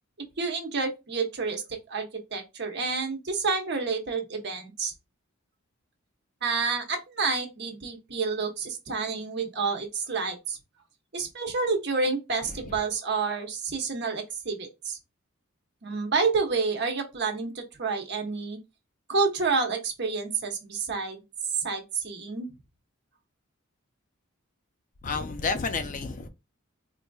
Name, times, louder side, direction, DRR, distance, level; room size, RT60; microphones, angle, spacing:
voice 1, 0.4-4.9 6.4-10.6 11.1-15.0 15.8-18.6 19.1-21.2 21.6-22.5, right 4 dB, 55° right, 0.9 m, -29 dB
voice 2, 25.0-26.3, left 4 dB, 40° left, 0.4 m, -30 dB
4.2 x 2.6 x 2.3 m
head